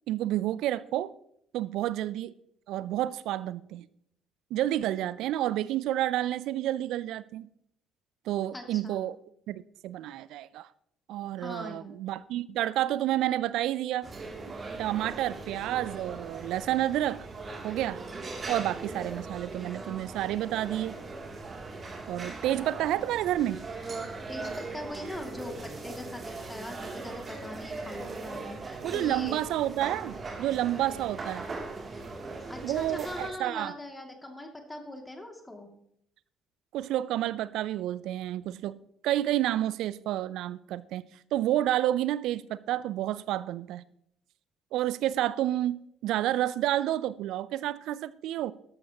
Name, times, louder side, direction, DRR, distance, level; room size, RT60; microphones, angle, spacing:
voice 1, 0.1-1.1 1.5-2.3 2.7-3.9 4.5-7.5 8.3-9.2 9.5-10.7 11.1-14.1 14.8-17.3 17.6-18.0 18.5-21.0 22.1-23.6 28.8-31.5 32.6-33.7 36.7-41.0 41.3-43.8 44.7-48.5, right 13 dB, 65° right, 0.4 m, -30 dB
voice 2, 8.5-9.0 11.4-12.0 14.5-14.6 24.3-29.4 32.5-35.7, left 1 dB, 15° left, 2.4 m, -41 dB
sound 1, 14.0-33.3, right 3 dB, 35° right, 2.8 m, -40 dB
12.5 x 12.5 x 2.9 m
hypercardioid pair, 50°, 0 cm